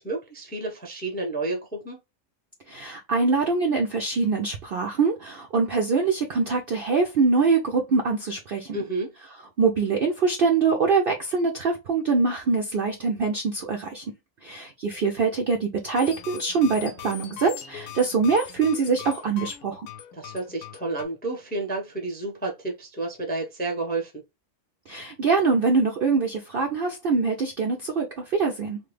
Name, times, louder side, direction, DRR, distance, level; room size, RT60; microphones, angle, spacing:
voice 1, 0.0-2.0 8.7-9.1 20.1-24.1, right 2 dB, 10° left, 0.4 m, -30 dB
voice 2, 2.7-8.8 9.6-14.0 14.4-19.9 24.9-28.8, right 4 dB, 65° right, 0.5 m, -24 dB
sound 1, 16.0-21.1, left 11 dB, 90° left, 1.1 m, -41 dB
3.1 x 2.1 x 3.3 m
omnidirectional pair, 1.5 m